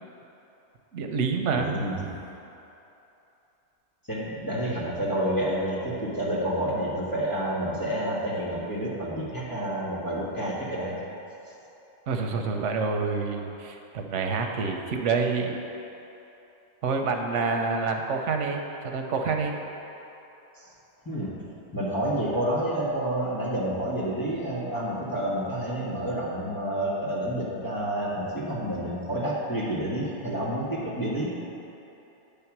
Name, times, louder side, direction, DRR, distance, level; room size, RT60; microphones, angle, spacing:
voice 1, 0.9-1.8 12.1-15.6 16.8-19.5, right 4 dB, 90° right, 3 dB, 1.0 m, -27 dB
voice 2, 1.5-2.1 4.1-11.0 20.6-20.7 21.0-31.3, right 1 dB, 20° left, -8 dB, 1.5 m, -29 dB
9.9 x 3.5 x 5.9 m, 3.0 s
omnidirectional pair, 1.2 m